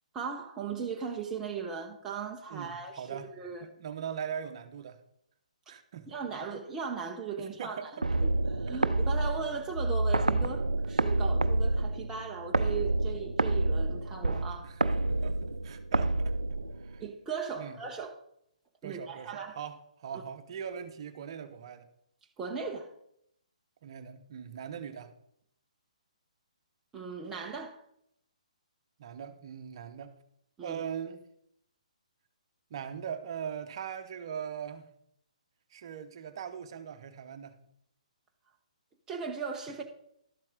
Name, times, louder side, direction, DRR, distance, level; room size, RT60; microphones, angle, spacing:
voice 1, 0.1-3.7 6.1-7.9 8.2-14.7 17.0-18.2 18.8-19.6 22.4-22.9 26.9-27.8 30.6-30.8 39.1-39.8, right 5 dB, 15° right, 1 dB, 0.8 m, -38 dB
voice 2, 2.5-3.3 3.6-5.0 5.7-6.2 7.4-8.2 8.7-9.1 14.6-15.4 15.6-17.0 17.6-17.8 18.8-21.9 23.8-25.1 29.0-30.1 30.6-31.2 32.7-34.9 35.7-37.6, right 8 dB, 45° right, 9 dB, 1.0 m, -41 dB
sound 1, 8.0-17.1, right 2 dB, 80° right, 0.5 m, -28 dB
12.5 x 7.5 x 3.7 m, 0.72 s
figure-of-eight pair, 130°, 4 cm